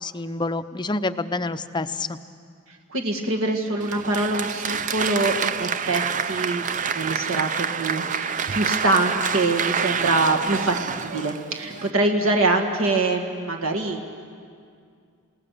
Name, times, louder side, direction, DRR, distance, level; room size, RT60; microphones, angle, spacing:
voice 1, 0.0-2.2, left 2 dB, 20° left, 10 dB, 0.6 m, -28 dB
voice 2, 2.9-6.6 6.9-14.2, right 2 dB, 70° right, 2 dB, 2.0 m, -24 dB
Applause, 3.8-11.9, right 6 dB, 35° right, 0.5 m, -27 dB
28.5 x 18.0 x 6.7 m, 2.2 s
head